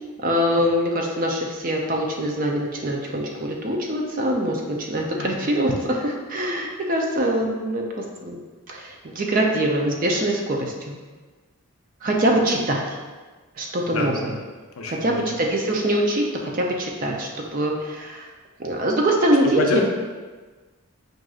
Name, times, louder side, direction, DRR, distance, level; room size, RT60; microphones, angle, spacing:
voice 1, 0.2-7.8 8.2-8.4 8.7-11.0 12.0-12.8 13.6-14.1 14.9-16.2 16.5-18.3 18.6-19.8, right 1 dB, 40° right, 0 dB, 0.5 m, -23 dB
voice 2, 5.2-5.5 13.9-14.4 14.8-15.5 19.4-19.8, left 3 dB, 75° left, 1 dB, 0.5 m, -28 dB
6.1 x 2.6 x 2.4 m, 1.4 s
head